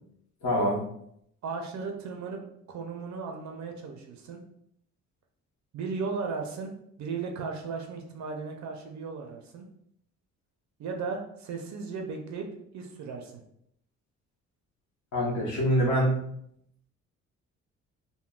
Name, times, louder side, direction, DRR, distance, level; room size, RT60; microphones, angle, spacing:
voice 1, 0.4-0.8 15.1-16.3, equal, 65° left, -3 dB, 1.2 m, -25 dB
voice 2, 1.4-2.4 2.7-4.4 5.7-6.7 7.0-9.6 10.8-12.5 12.7-13.4, right 4 dB, 65° right, 3 dB, 0.6 m, -36 dB
3.7 x 2.1 x 2.3 m, 0.72 s
cardioid pair, 90°, 30 cm